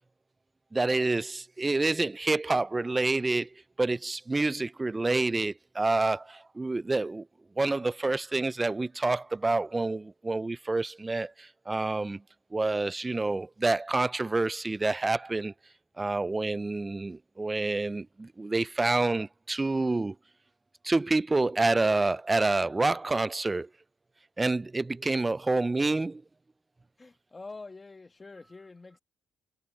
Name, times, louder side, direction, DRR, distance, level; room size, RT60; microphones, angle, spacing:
voice 1, 0.7-3.5 3.8-7.3 7.6-12.2 12.5-15.5 16.0-20.2 20.8-23.7 24.4-26.2, right 3 dB, 20° right, 0.4 m, -28 dB
voice 2, 27.0-29.0, left 3 dB, 25° left, 1.3 m, -46 dB
cardioid pair, 90°, 0 cm